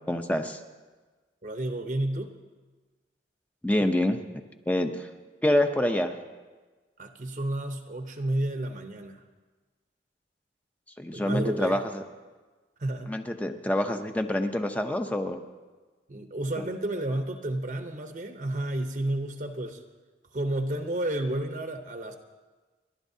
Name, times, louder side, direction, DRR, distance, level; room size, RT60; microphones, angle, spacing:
voice 1, 0.1-0.6 3.6-4.2 4.7-5.1 5.4-6.1 11.0-12.0 13.1-15.4, left 1 dB, 10° left, 6 dB, 0.6 m, -26 dB
voice 2, 1.4-2.3 7.0-9.2 11.1-11.8 12.8-13.2 16.1-19.8 20.3-22.1, right 1 dB, 45° right, 5 dB, 0.8 m, -31 dB
30.0 x 11.5 x 2.7 m, 1.3 s
head